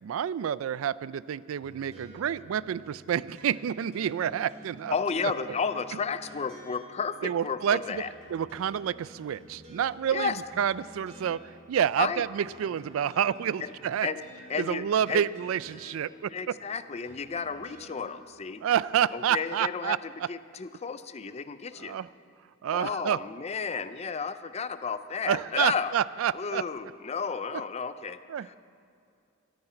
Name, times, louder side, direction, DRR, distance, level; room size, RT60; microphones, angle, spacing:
voice 1, 0.0-4.9 7.2-8.0 8.3-14.1 14.6-16.5 18.6-20.0 21.8-22.1 22.6-23.2 25.3-26.6 27.5-27.6 28.3-28.5, right 9 dB, 80° right, 19 dB, 0.3 m, -29 dB
sound 1, 1.6-17.9, equal, 35° right, 3.5 m, -52 dB
voice 2, 4.9-8.1 10.1-10.4 12.0-12.2 13.6-13.7 14.0-14.2 14.5-15.2 16.3-18.6 19.1-22.0 22.7-25.9 26.3-28.5, left 5 dB, 30° left, 12 dB, 0.5 m, -32 dB
23.0 x 9.5 x 4.5 m, 2.5 s
head